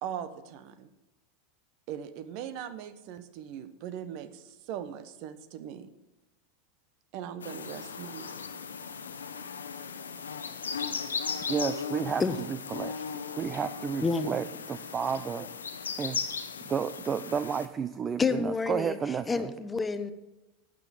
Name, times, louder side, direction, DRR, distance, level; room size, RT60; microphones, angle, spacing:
voice 1, 0.0-0.9 1.9-5.9 7.1-8.4, right 9 dB, 55° right, 12 dB, 1.0 m, -40 dB
sound 1, 7.4-17.7, left 6 dB, 80° left, 0.9 m, -37 dB
voice 2, 11.5-12.2 12.5-15.5 16.0-16.2 16.6-19.5, right 7 dB, 30° right, 13 dB, 0.5 m, -32 dB
voice 3, 14.0-14.3 18.2-19.0 19.3-20.1, left 4 dB, 15° left, 11 dB, 0.9 m, -28 dB
12.0 x 7.7 x 7.0 m, 1.0 s
hypercardioid pair, 85°, 0 cm